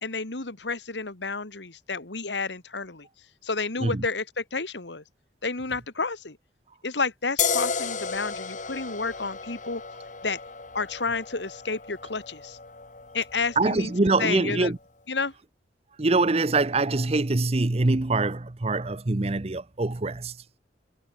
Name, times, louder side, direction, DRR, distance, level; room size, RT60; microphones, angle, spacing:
voice 1, 0.0-3.1 3.4-5.0 5.4-6.4 6.8-9.8 10.2-10.4 10.7-12.6 13.1-13.9 14.2-14.7 15.1-15.3, left 4 dB, 80° left, 2.2 m, -30 dB
sound 1, 7.4-14.7, left 6 dB, 45° left, 2.6 m, -33 dB
voice 2, 13.6-14.8 16.0-20.3, right 3 dB, 35° right, 0.8 m, -24 dB
head